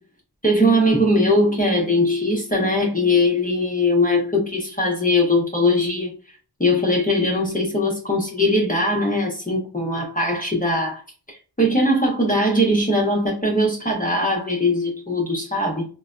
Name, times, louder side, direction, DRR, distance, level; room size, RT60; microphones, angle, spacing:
voice 1, 0.4-6.1 6.6-11.0 11.3-15.9, left 1 dB, 20° left, 0.9 m, -20 dB
3.2 x 2.2 x 2.4 m
wide cardioid pair, 40°, 41 cm